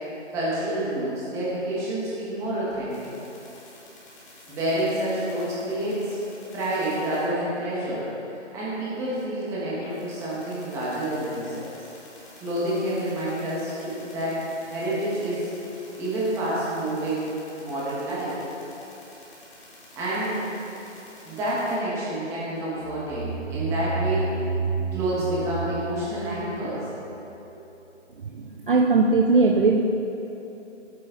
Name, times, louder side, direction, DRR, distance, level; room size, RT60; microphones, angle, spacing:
voice 1, 0.3-3.1 4.5-6.2 6.5-8.0 8.5-11.7 12.4-15.5 16.0-17.2 17.6-18.4 20.0-20.5 21.2-24.3 24.9-26.9, right 1 dB, 10° right, -8 dB, 1.5 m, -28 dB
sound 1, 2.9-7.5 9.4-9.5 9.7-21.8, left 1 dB, 25° left, 2.0 m, -49 dB
sound 2, 22.8-27.3, right 4 dB, 85° right, 1.0 m, -30 dB
voice 2, 28.2-29.8, right 3 dB, 45° right, 2 dB, 0.6 m, -20 dB
12.0 x 8.4 x 4.0 m, 3.0 s
hypercardioid pair, 165°, 36 cm